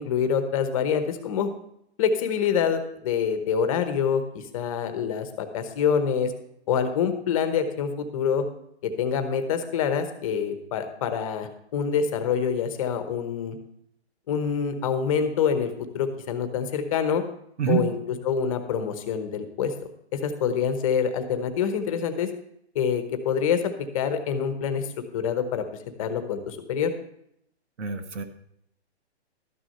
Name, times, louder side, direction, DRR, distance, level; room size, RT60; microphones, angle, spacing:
voice 1, 0.0-1.5 2.0-6.3 6.7-8.4 8.8-13.6 14.3-17.2 17.7-18.0 18.2-19.7 20.1-22.3 22.7-23.6 23.9-24.9 25.1-25.6 26.0-26.9, left 7 dB, 30° left, 8 dB, 1.0 m, -26 dB
voice 2, 27.8-28.2, right 7 dB, 90° right, 8 dB, 1.5 m, -26 dB
12.5 x 6.2 x 5.5 m, 0.75 s
hypercardioid pair, 160°, 34 cm